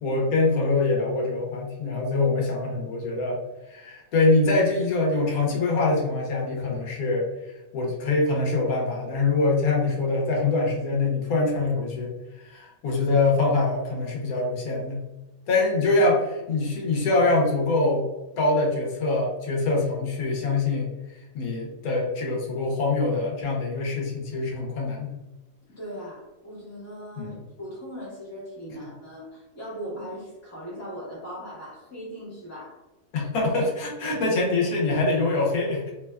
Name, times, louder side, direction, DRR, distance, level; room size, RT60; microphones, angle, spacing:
voice 1, 0.0-3.4 3.7-7.3 7.7-15.0 15.5-18.1 18.4-20.9 21.3-25.1 27.2-27.4 33.1-35.9, left 3 dB, 85° left, -1 dB, 1.2 m, -24 dB
voice 2, 25.8-32.8, equal, 10° left, -6 dB, 1.0 m, -39 dB
2.7 x 2.2 x 2.2 m, 1.1 s
omnidirectional pair, 1.5 m